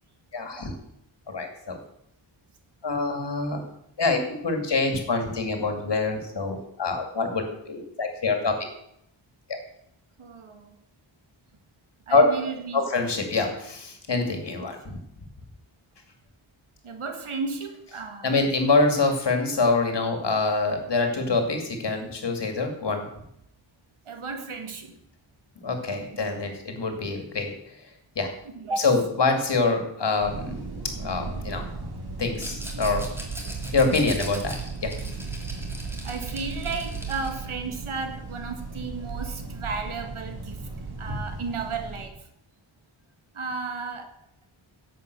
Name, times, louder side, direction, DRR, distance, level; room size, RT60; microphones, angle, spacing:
voice 1, 0.3-0.7 1.3-1.8 2.8-3.6 4.0-8.6 9.5-9.6 12.1-12.2 12.7-15.0 18.2-23.1 25.6-27.8 28.2-28.3 28.8-30.7 31.0-31.7 32.2-33.1 33.7-34.9, left 3 dB, 55° left, 5 dB, 2.5 m, -25 dB
voice 2, 10.2-10.8 12.1-12.8 14.8-15.0 16.8-18.4 24.1-24.9 25.9-26.2 28.5-28.9 33.9-34.0 36.0-40.6 41.0-42.2 43.3-44.1, right 4 dB, 85° right, 6 dB, 1.9 m, -34 dB
sound 1, 30.2-42.1, right 3 dB, 50° right, 2.2 m, -35 dB
Rattle, 32.3-37.4, equal, 5° right, 2.6 m, -41 dB
11.0 x 7.8 x 6.9 m, 0.76 s
wide cardioid pair, 135°, 48 cm